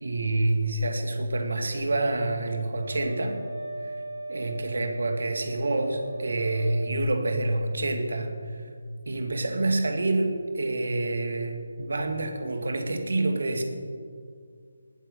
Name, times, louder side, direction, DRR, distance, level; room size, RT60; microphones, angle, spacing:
voice 1, 0.0-3.4 4.3-8.3 9.1-13.6, right 2 dB, 55° right, 5 dB, 2.1 m, -27 dB
Wind instrument woodwind instrument, 2.7-7.0, right 2 dB, 75° right, 4.4 m, -38 dB
20.0 x 8.8 x 6.6 m, 2.2 s
figure-of-eight pair, 150°, 0 cm